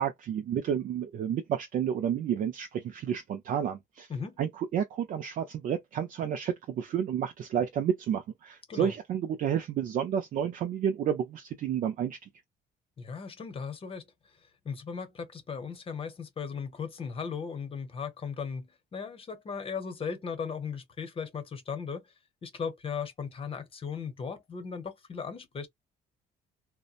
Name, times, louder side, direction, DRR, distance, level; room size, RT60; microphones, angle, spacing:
voice 1, 0.0-4.1 4.4-12.3, right 8 dB, 50° right, 0.5 m, -30 dB
voice 2, 13.0-14.1 14.6-22.1 22.4-25.7, left 6 dB, 35° left, 0.8 m, -37 dB
2.7 x 2.1 x 2.4 m
cardioid pair, 110°, 17 cm